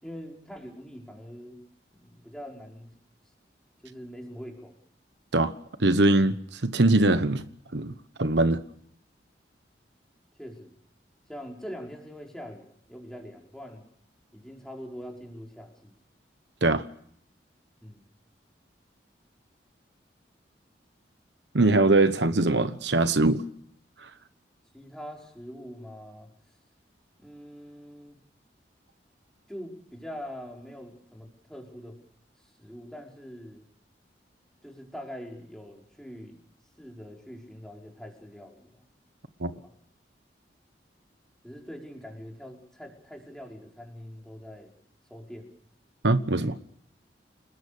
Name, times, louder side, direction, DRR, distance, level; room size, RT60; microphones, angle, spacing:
voice 1, 0.0-1.6 1.9-2.9 3.8-4.7 10.4-10.8 11.3-13.9 14.3-15.9 17.8-18.0 24.7-26.3 27.2-28.2 29.5-32.0 32.4-33.6 34.6-36.4 36.8-38.8 39.5-39.7 41.4-44.7 45.1-45.5 46.4-46.6, equal, 5° left, 5.1 m, -43 dB
voice 2, 5.8-7.4 7.7-8.6 16.6-16.8 21.5-23.4 24.0-24.1 39.4-39.5 46.0-46.6, right 2 dB, 80° right, 1.1 m, -22 dB
30.0 x 20.0 x 6.7 m
head